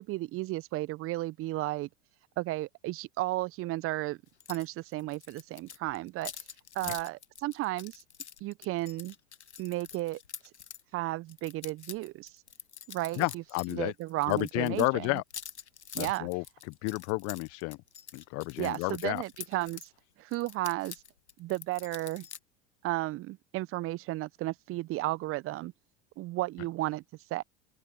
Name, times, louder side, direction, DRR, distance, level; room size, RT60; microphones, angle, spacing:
voice 1, 0.0-1.9 2.4-4.2 4.5-6.4 6.7-8.0 8.4-9.1 9.6-10.2 10.9-12.3 12.9-13.4 13.7-15.2 16.0-16.3 18.6-19.9 20.2-21.0 21.4-22.3 22.8-25.7 26.2-27.0 27.3-27.4, right 18 dB, 40° right, 0.9 m, -33 dB
sound 1, 4.4-4.7 4.9-10.8 11.3-13.8 14.0-19.9 20.3-22.4, left 8 dB, 85° left, 1.5 m, -46 dB
voice 2, 13.2-13.9 14.3-15.2 15.9-16.4 16.8-17.8 18.1-19.2, left 28 dB, 50° left, 0.9 m, -31 dB
open air
figure-of-eight pair, 80°, 33 cm